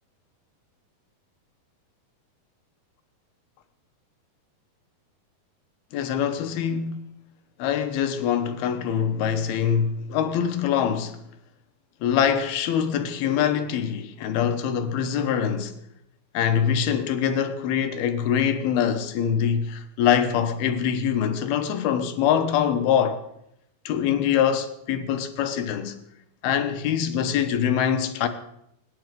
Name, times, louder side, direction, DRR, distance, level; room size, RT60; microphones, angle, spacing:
voice 1, 5.9-7.0 7.6-11.2 12.0-15.8 16.3-23.2 23.9-26.0 26.4-28.3, left 8 dB, 85° left, 3.1 m, -24 dB
25.0 x 10.5 x 5.2 m
omnidirectional pair, 4.3 m